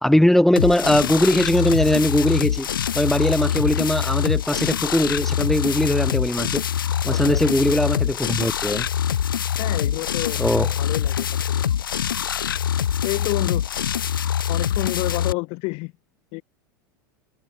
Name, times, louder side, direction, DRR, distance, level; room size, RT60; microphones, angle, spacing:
voice 1, 0.0-2.7 2.9-6.6 7.0-8.9 10.4-10.7, left 1 dB, 5° left, 1.8 m, -20 dB
sound 1, 0.6-15.3, left 9 dB, 85° left, 2.4 m, -24 dB
voice 2, 9.6-10.4 10.8-11.6 13.0-13.6 14.5-15.9 16.3-16.4, left 28 dB, 55° left, 7.6 m, -29 dB
hypercardioid pair, 90°, 11 cm